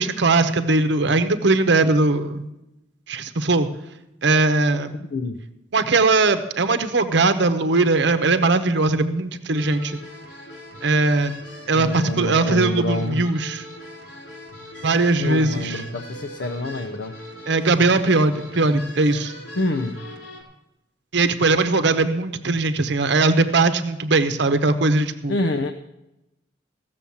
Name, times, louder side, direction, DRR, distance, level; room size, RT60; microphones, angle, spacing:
voice 1, 0.0-2.5 3.1-3.7 4.2-4.9 5.7-10.0 10.8-11.3 11.7-13.6 14.8-15.8 17.5-19.3 21.1-25.4, right 3 dB, 65° right, 9 dB, 0.9 m, -20 dB
sound 1, 9.5-20.4, left 1 dB, 90° left, 5.4 m, -40 dB
voice 2, 11.7-13.2 15.2-17.1 19.6-20.0 25.3-25.7, left 2 dB, 65° left, 6 dB, 0.7 m, -26 dB
15.5 x 7.0 x 7.1 m, 0.92 s
head